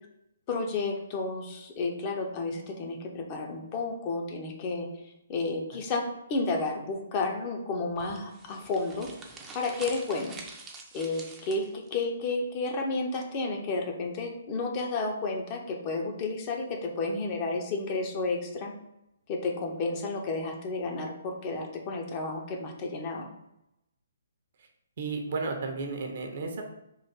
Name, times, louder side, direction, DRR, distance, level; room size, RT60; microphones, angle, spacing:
voice 1, 0.5-4.9 5.3-9.1 9.5-10.4 10.9-18.7 19.3-23.3, left 3 dB, 30° left, 2 dB, 0.6 m, -31 dB
sound 1, 7.9-11.9, right 3 dB, 10° right, 0.5 m, -46 dB
voice 2, 25.0-26.6, right 4 dB, 45° right, 3 dB, 0.7 m, -33 dB
3.7 x 2.5 x 4.4 m, 0.83 s
figure-of-eight pair, 130°, 0 cm